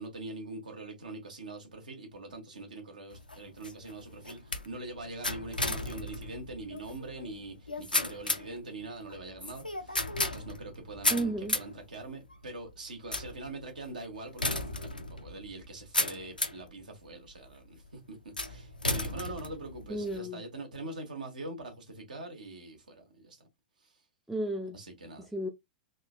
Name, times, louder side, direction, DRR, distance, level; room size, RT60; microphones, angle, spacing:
voice 1, 0.0-18.2 18.4-23.5 23.8-23.9 24.7-25.3, right 2 dB, 70° right, 1.1 m, -43 dB
sound 1, 3.1-16.7 17.3-17.7 18.4-20.2, left 2 dB, 90° left, 0.4 m, -35 dB
voice 2, 11.1-11.6 19.9-20.4 24.3-24.8 25.3-25.5, right 1 dB, ahead, 0.4 m, -33 dB
3.6 x 2.2 x 2.3 m
figure-of-eight pair, 100°, 5 cm